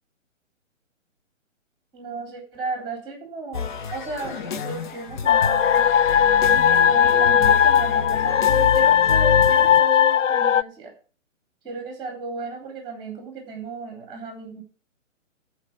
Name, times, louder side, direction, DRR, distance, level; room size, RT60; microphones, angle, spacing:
voice 1, 1.9-5.9 6.5-10.9 11.6-14.6, right 4 dB, 10° right, 1 dB, 3.8 m, -35 dB
sound 1, 3.5-9.8, left 6 dB, 40° left, 1.0 m, -30 dB
sound 2, 5.3-10.6, left 8 dB, 70° left, 0.6 m, -18 dB
13.0 x 4.9 x 7.5 m, 0.38 s
figure-of-eight pair, 130°, 39 cm